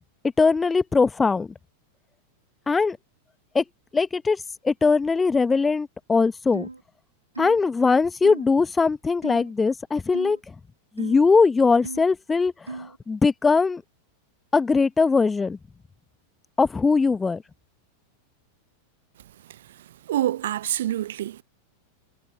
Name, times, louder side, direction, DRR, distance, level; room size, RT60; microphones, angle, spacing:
voice 1, 0.4-1.5 2.7-3.0 3.5-3.6 3.9-6.7 7.4-10.4 11.0-13.8 14.5-15.6 16.6-17.4, left 4 dB, 15° left, 1.2 m, -21 dB
sound 1, 6.5-6.8 7.4-7.6 8.2-8.5 9.2-9.5 10.1-10.4 11.0-11.2 11.8-12.1 12.7-13.0, right 3 dB, 80° right, 2.0 m, -36 dB
voice 2, 20.1-21.4, right 12 dB, 60° right, 0.5 m, -26 dB
figure-of-eight pair, 90°, 0 cm